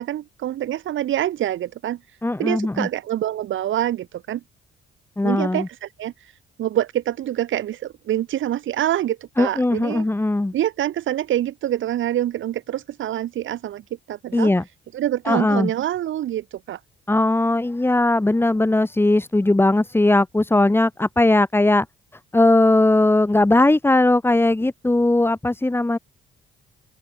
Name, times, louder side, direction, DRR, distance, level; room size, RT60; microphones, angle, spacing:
voice 1, 0.0-2.0 2.4-4.4 5.2-6.3 6.6-10.0 10.5-13.8 14.1-14.5 14.9-16.8, right 12 dB, 75° right, 6.1 m, -26 dB
voice 2, 2.2-2.9 5.2-5.7 9.4-10.5 14.3-14.6 15.3-15.7 17.1-21.9 22.3-26.0, left 2 dB, 10° left, 1.7 m, -18 dB
open air
cardioid pair, 90°, 20 cm